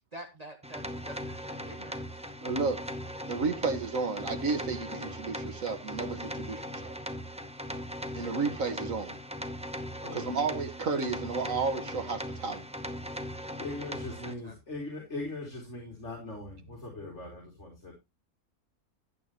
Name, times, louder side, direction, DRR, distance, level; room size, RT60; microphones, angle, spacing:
voice 1, 0.1-2.3 13.7-14.5, right 1 dB, 30° right, 1.3 m, -48 dB
sound 1, 0.6-14.3, equal, 5° right, 0.6 m, -39 dB
voice 2, 2.4-2.8 3.2-6.9 8.1-9.1 10.1-12.6, right 4 dB, 65° right, 2.0 m, -32 dB
voice 3, 10.0-10.3 13.6-17.9, left 2 dB, 50° left, 3.5 m, -40 dB
12.5 x 8.4 x 3.1 m
omnidirectional pair, 1.5 m